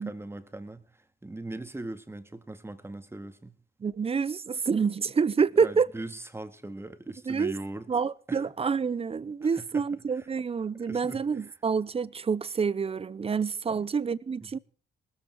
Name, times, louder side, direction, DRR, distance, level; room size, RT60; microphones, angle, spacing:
voice 1, 0.0-3.5 5.6-7.9 8.3-8.5 9.5-9.9 10.1-10.3 10.8-11.5 13.7-13.9 14.4-14.6, right 2 dB, 10° right, 2.0 m, -40 dB
voice 2, 3.8-5.9 7.3-7.5 7.9-14.6, right 5 dB, 30° right, 0.7 m, -27 dB
19.5 x 14.0 x 4.7 m
cardioid pair, 90°, 20 cm